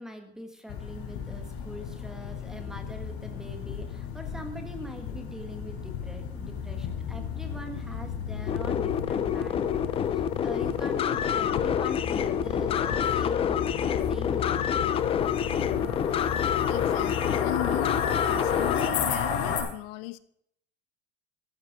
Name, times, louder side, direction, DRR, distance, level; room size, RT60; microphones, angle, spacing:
voice 1, 0.0-9.8 10.1-14.7, equal, ahead, 6 dB, 1.5 m, -42 dB
sound 1, 0.7-19.6, left 7 dB, 50° left, 4.6 m, -33 dB
sound 2, 8.5-18.9, left 9 dB, 20° left, 0.6 m, -27 dB
voice 2, 16.1-20.2, left 14 dB, 80° left, 15 dB, 1.1 m, -37 dB
14.5 x 11.5 x 5.1 m, 0.71 s
cardioid pair, 180°, 30 cm